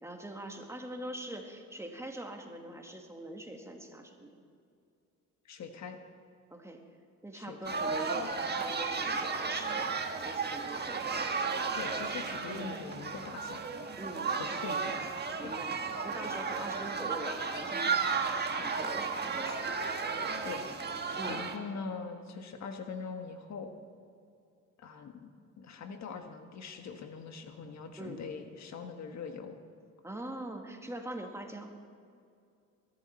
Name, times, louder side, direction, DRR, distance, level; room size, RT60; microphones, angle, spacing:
voice 1, 0.0-4.4 6.5-6.8 7.2-10.0 10.2-11.1 12.5-12.7 14.0-14.4 15.4-19.7 21.1-21.4 28.0-28.2 30.0-31.7, right 1 dB, 10° right, 2 dB, 1.8 m, -43 dB
voice 2, 5.4-6.0 7.3-8.3 11.7-13.7 14.3-14.9 16.5-16.6 20.4-23.7 24.8-25.3 25.6-29.6, left 5 dB, 65° left, 6 dB, 1.5 m, -43 dB
sound 1, 7.6-21.6, right 4 dB, 35° right, 1.4 m, -34 dB
22.0 x 11.0 x 4.4 m, 2.4 s
cardioid pair, 90°, 30 cm